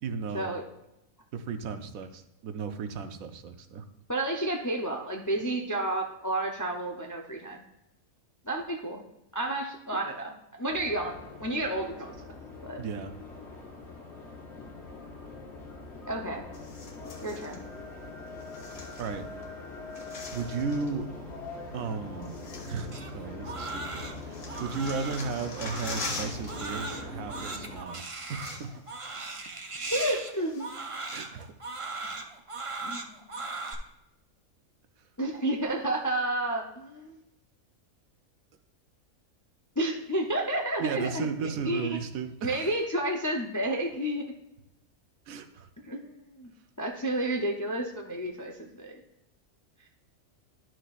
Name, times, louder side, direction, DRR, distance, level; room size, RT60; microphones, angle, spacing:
voice 1, 0.0-0.5 1.3-3.8 12.8-13.1 19.0-19.3 20.3-21.1 21.7-28.0 28.3-29.6 31.1-31.5 40.8-42.7 45.3-45.7, right 5 dB, 80° right, 8 dB, 1.1 m, -35 dB
voice 2, 4.1-7.6 8.4-9.0 9.3-12.1 12.6-12.8 16.1-16.4 17.2-17.6 29.9-30.7 32.8-33.2 35.2-37.2 39.8-41.3 41.6-42.0 42.4-44.2 45.9-46.5 46.8-49.0, right 1 dB, 25° left, 2 dB, 0.4 m, -31 dB
sound 1, 10.7-27.8, left 3 dB, 50° left, 1.8 m, -43 dB
sound 2, 16.5-17.6 18.4-19.5 19.7-21.0 21.8-21.9 22.2-23.4 23.7-26.7 26.9-27.2 27.9-28.0 28.2-29.0 29.3-29.4 29.9-30.9 31.4-31.5, left 3 dB, 80° left, 1.8 m, -43 dB
Crying sobbing, 22.9-33.7, right 3 dB, 30° right, 0.6 m, -38 dB
11.0 x 6.1 x 2.5 m, 0.89 s
omnidirectional pair, 1.5 m